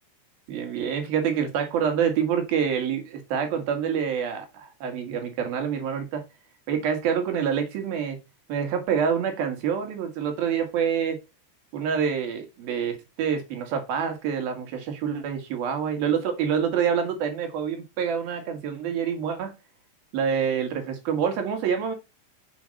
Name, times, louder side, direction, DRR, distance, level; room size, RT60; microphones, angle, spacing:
voice 1, 0.5-6.2 6.7-8.2 8.5-11.2 11.7-19.5 20.1-21.9, right 7 dB, 65° right, 3.0 m, -27 dB
7.4 x 5.3 x 6.3 m
omnidirectional pair, 5.1 m